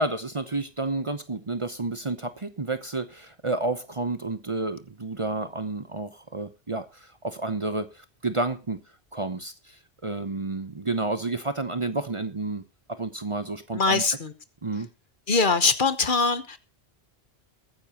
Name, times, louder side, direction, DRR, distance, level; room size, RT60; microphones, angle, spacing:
voice 1, 0.0-8.8 9.1-12.6 12.9-14.0 14.6-14.9, right 2 dB, 30° right, 0.8 m, -30 dB
voice 2, 13.7-14.3 15.3-16.6, left 4 dB, 50° left, 1.2 m, -22 dB
21.5 x 9.9 x 2.9 m
omnidirectional pair, 1.1 m